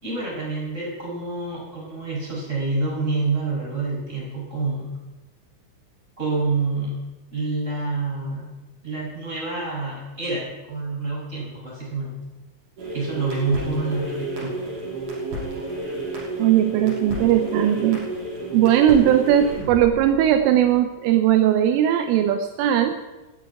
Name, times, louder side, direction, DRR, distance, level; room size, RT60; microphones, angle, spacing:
voice 1, 0.0-4.9 6.2-7.0 7.3-8.5 8.8-12.2 12.9-14.5, right 3 dB, 15° right, -4 dB, 6.4 m, -27 dB
sound 1, 12.8-20.8, right 2 dB, 50° right, 6.6 m, -31 dB
voice 2, 16.4-18.0 18.5-23.0, right 11 dB, 80° right, 7 dB, 3.3 m, -18 dB
12.0 x 9.6 x 9.6 m, 1.1 s
omnidirectional pair, 5.8 m